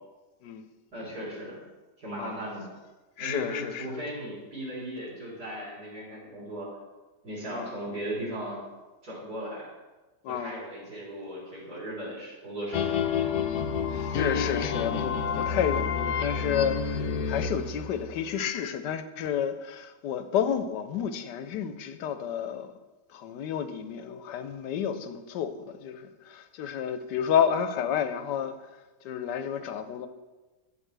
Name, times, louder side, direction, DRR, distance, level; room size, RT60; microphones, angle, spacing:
voice 1, 0.9-1.6 2.0-2.7 3.2-6.7 7.2-8.6 9.0-9.7 10.3-13.0, right 1 dB, 65° right, -7 dB, 4.2 m, -37 dB
voice 2, 3.2-3.9 7.5-7.7 10.2-10.6 13.9-22.7 23.1-28.5 29.0-30.1, left 8 dB, 90° left, 10 dB, 1.3 m, -30 dB
sound 1, 12.7-18.3, left 6 dB, 70° left, 1.2 m, -29 dB
11.0 x 7.7 x 3.3 m, 1.2 s
omnidirectional pair, 1.8 m